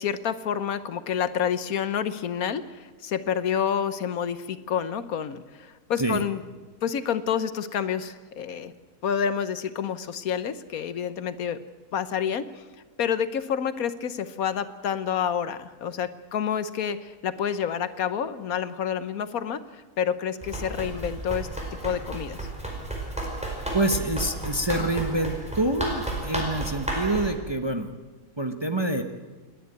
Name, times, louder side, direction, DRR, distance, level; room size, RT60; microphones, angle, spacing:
voice 1, 0.0-6.4 6.8-8.7 9.0-11.6 11.9-12.6 13.0-22.5, left 8 dB, 70° left, 13 dB, 1.3 m, -28 dB
Run, 20.4-27.3, right 1 dB, 5° right, 5.0 m, -32 dB
voice 2, 23.7-28.0 28.4-29.0, right 2 dB, 20° right, 6 dB, 0.9 m, -26 dB
29.5 x 10.5 x 9.1 m, 1.3 s
omnidirectional pair, 1.6 m